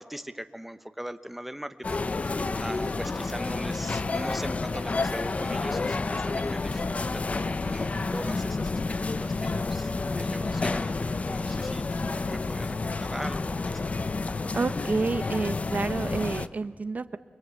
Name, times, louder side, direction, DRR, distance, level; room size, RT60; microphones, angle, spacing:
voice 1, 0.0-8.8 9.1-13.9, equal, 5° right, 9 dB, 1.1 m, -40 dB
sound 1, 1.8-16.5, left 3 dB, 40° left, 0.7 m, -30 dB
voice 2, 14.5-17.2, right 4 dB, 50° right, 11 dB, 0.8 m, -29 dB
29.5 x 21.5 x 8.2 m, 1.4 s
wide cardioid pair, 90°, 3 cm